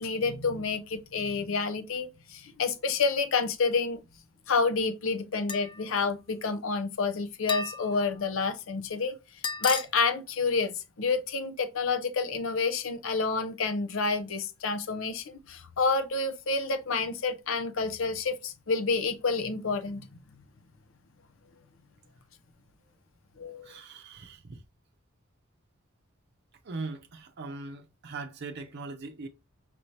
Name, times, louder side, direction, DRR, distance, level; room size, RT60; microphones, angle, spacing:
voice 1, 0.0-4.0 4.5-9.2 9.6-20.1 23.4-23.7, left 4 dB, 70° left, 0.7 m, -29 dB
sound 1, 5.5-5.8 7.5-8.1 9.4-9.9, left 5 dB, 20° left, 0.4 m, -33 dB
voice 2, 23.6-24.6 26.6-29.3, right 3 dB, 55° right, 0.6 m, -40 dB
5.9 x 2.7 x 3.2 m
head